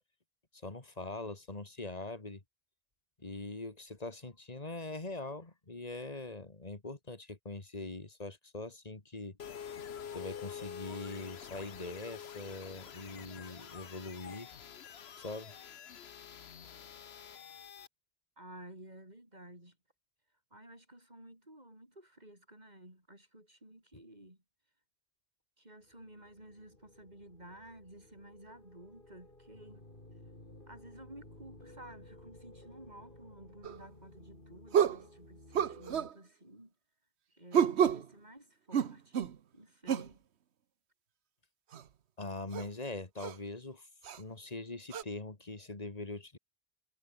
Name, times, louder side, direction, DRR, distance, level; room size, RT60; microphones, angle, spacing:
voice 1, 0.5-2.4 3.2-9.4 10.1-14.5 15.2-15.5 42.2-43.9 44.2-46.4, left 2 dB, 35° left, 2.4 m, -42 dB
sound 1, 9.4-17.9, left 8 dB, 75° left, 1.2 m, -47 dB
voice 2, 18.4-19.8 20.5-24.4 25.6-29.9 30.7-36.7 37.3-40.2, right 1 dB, 40° right, 7.6 m, -53 dB
sound 2, 25.8-36.1, left 1 dB, 55° left, 5.5 m, -56 dB
sound 3, 33.6-33.8 34.7-35.0 35.5-36.1 37.5-38.1 38.7-39.4 39.9-40.1 41.7-41.8 42.5-42.7 43.2-43.3 44.0-44.2 44.9-45.0, right 8 dB, 85° right, 1.2 m, -29 dB
omnidirectional pair, 1.1 m